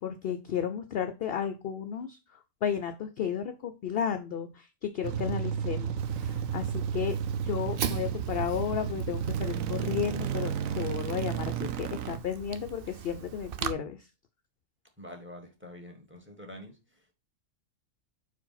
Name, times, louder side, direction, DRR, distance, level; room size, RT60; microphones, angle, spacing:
voice 1, 0.0-7.2 7.4-14.1, left 8 dB, 60° left, 0.7 m, -33 dB
sound 1, 5.0-12.2, right 8 dB, 80° right, 1.0 m, -32 dB
Fire, 6.0-13.7, right 8 dB, 55° right, 0.7 m, -41 dB
voice 2, 15.0-17.1, left 1 dB, 10° right, 1.5 m, -47 dB
4.7 x 4.5 x 5.7 m
omnidirectional pair, 1.4 m